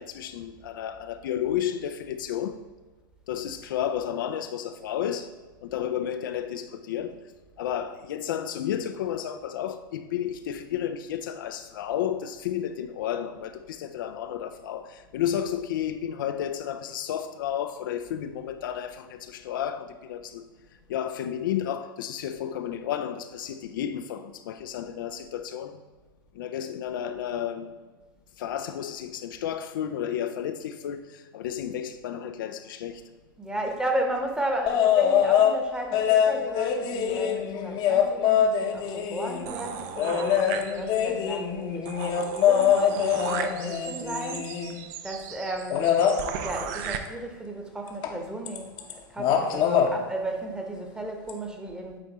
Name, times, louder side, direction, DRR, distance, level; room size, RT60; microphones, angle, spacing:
voice 1, 0.0-2.6 3.3-5.3 5.6-7.2 7.6-20.5 20.9-25.8 26.3-27.7 28.4-33.0, left 10 dB, 65° left, 0.4 m, -32 dB
voice 2, 33.4-41.9 42.4-44.6 45.0-45.9 46.4-48.7 49.1-52.0, right 1 dB, 5° right, 1.0 m, -34 dB
sound 1, 34.7-35.6 35.9-39.5 40.0-44.8 45.7-46.2 48.0-48.2 48.5-48.9 49.2-49.9 51.3-51.4, left 9 dB, 40° left, 0.8 m, -24 dB
sound 2, 39.5-41.1 41.5-41.6 41.8-47.0, right 8 dB, 55° right, 0.6 m, -36 dB
8.6 x 4.3 x 2.9 m
hypercardioid pair, 100°, 12 cm